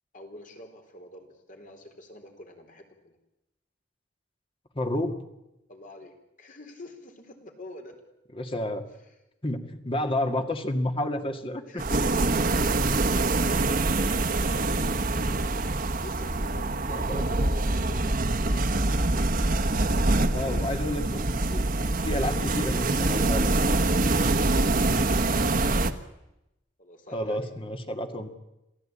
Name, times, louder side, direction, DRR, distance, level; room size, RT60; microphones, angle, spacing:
voice 1, 0.1-3.2 5.7-7.9 11.7-15.7 16.0-20.6 24.5-25.8 26.8-27.5, left 1 dB, 45° left, 4 dB, 3.9 m, -46 dB
voice 2, 4.7-5.2 8.3-8.9 9.4-12.0 17.0-17.2 20.3-21.6 22.0-23.7 27.1-28.3, left 1 dB, 30° left, 6 dB, 2.1 m, -30 dB
sound 1, 11.8-25.9, right 2 dB, 50° right, 1.3 m, -25 dB
27.5 x 16.5 x 8.8 m, 0.92 s
head